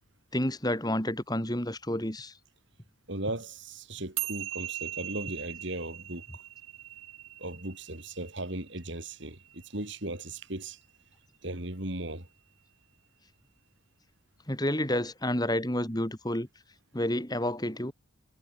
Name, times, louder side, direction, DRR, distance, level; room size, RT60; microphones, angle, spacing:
voice 1, 0.3-2.3 14.5-16.5 16.9-17.9, left 1 dB, 20° left, 3.7 m, -29 dB
voice 2, 3.1-6.4 7.4-10.8 11.4-12.3, right 1 dB, 55° right, 3.7 m, -37 dB
sound 1, 4.2-10.7, right 13 dB, 75° right, 2.7 m, -40 dB
head